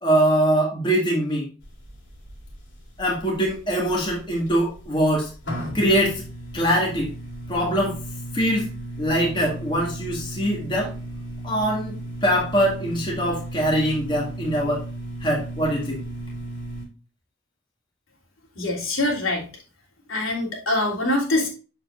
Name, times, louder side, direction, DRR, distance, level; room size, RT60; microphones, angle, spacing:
voice 1, 0.0-1.5 3.0-5.3 5.7-6.2 6.5-7.1 7.5-8.0 8.3-8.7 9.0-10.9 11.4-12.0 12.2-14.8 15.2-16.0, right 1 dB, 25° left, -2 dB, 1.9 m, -22 dB
sound 1, 1.6-16.9, right 1 dB, 60° left, 2.8 m, -36 dB
voice 2, 18.6-19.5 20.1-21.5, left 2 dB, 85° left, -2 dB, 3.3 m, -24 dB
7.4 x 6.7 x 2.5 m, 0.33 s
head